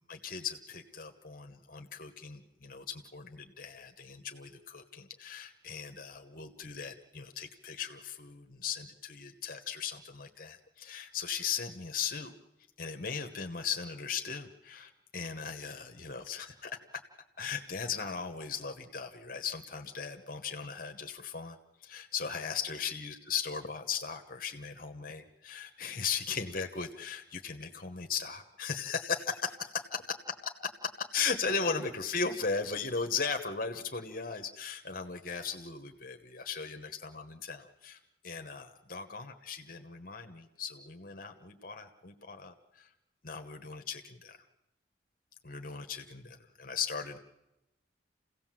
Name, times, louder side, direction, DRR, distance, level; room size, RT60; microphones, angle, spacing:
voice 1, 0.1-12.3 12.8-16.7 17.4-30.0 30.6-38.0 38.2-42.9 43.2-44.4 45.4-47.2, left 6 dB, 45° left, 6 dB, 1.1 m, -37 dB
28.5 x 17.0 x 7.6 m, 0.97 s
head